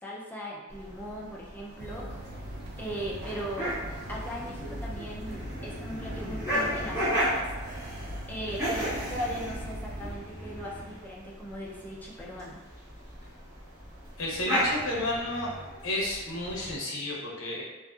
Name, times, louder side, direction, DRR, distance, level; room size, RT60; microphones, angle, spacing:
voice 1, 0.0-2.5 2.8-3.8 4.1-7.5 8.3-12.6, equal, 10° left, -4 dB, 0.4 m, -38 dB
sound 1, 0.7-16.8, equal, 15° right, 1.3 m, -35 dB
sound 2, 1.8-10.1, right 1 dB, 55° right, 0.4 m, -41 dB
voice 2, 14.2-15.5 15.8-17.6, left 1 dB, 80° left, -3 dB, 0.7 m, -32 dB
2.5 x 2.5 x 2.3 m, 1.2 s
head